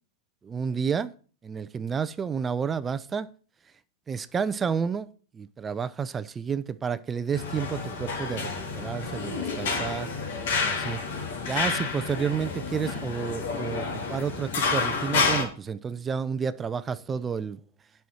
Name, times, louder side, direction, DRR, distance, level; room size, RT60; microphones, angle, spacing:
voice 1, 0.4-1.1 1.4-3.3 4.1-5.1 5.3-10.1 10.6-11.0 11.5-17.6, right 6 dB, 20° right, 0.5 m, -30 dB
sound 1, 7.3-15.4, left 4 dB, 70° left, 2.9 m, -29 dB
9.3 x 5.7 x 6.2 m
hypercardioid pair, 125°, 0 cm